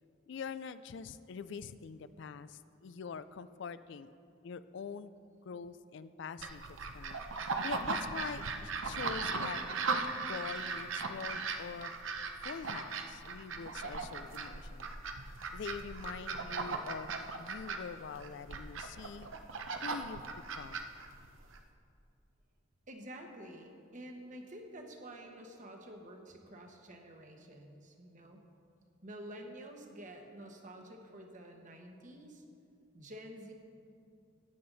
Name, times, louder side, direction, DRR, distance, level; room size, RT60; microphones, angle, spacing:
voice 1, 0.3-4.1 4.4-5.1 5.4-9.6 10.1-11.9 12.4-14.9 15.5-19.3 19.8-20.2 20.5-20.8, left 6 dB, 65° left, 14 dB, 0.4 m, -44 dB
sound 1, 6.4-21.6, right 4 dB, 85° right, 0.8 m, -38 dB
voice 2, 22.9-28.4 29.0-32.4 32.9-33.5, right 1 dB, 40° right, 3 dB, 1.2 m, -49 dB
15.0 x 9.5 x 4.0 m, 2.4 s
head